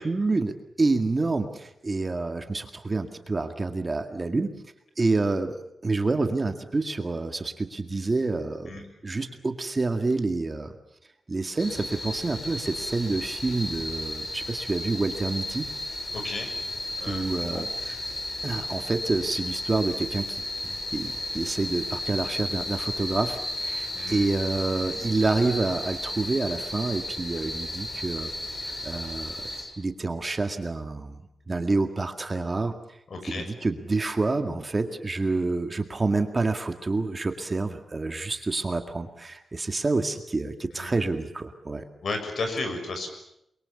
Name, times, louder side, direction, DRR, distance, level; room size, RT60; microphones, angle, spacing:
voice 1, 0.0-4.5 5.0-10.7 11.3-15.7 17.0-18.0 18.4-28.3 28.6-29.5 29.8-32.8 33.3-41.9, right 3 dB, 25° right, 6 dB, 2.0 m, -28 dB
sound 1, 11.6-29.6, left 1 dB, 35° left, 7.9 m, -34 dB
voice 2, 16.1-16.5 17.0-17.7 23.9-24.3 33.1-33.5 40.7-41.0 42.0-43.1, left 3 dB, 60° left, 6 dB, 6.6 m, -33 dB
29.5 x 23.0 x 7.2 m, 0.78 s
wide cardioid pair, 150°, 0 cm